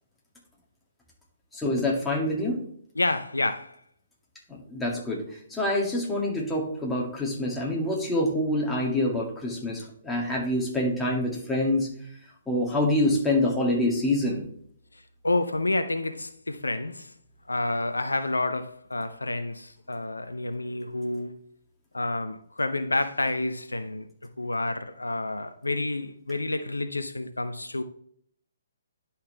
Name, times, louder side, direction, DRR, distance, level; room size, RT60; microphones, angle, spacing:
voice 1, 1.5-2.6 4.5-5.2 5.5-11.9 12.5-14.4, left 1 dB, 5° left, 2.2 m, -26 dB
voice 2, 3.0-3.8 14.9-17.1 17.5-21.4 21.9-24.1 24.4-27.8, left 2 dB, 80° left, 0.6 m, -29 dB
10.5 x 5.7 x 3.4 m
figure-of-eight pair, 130°, 0 cm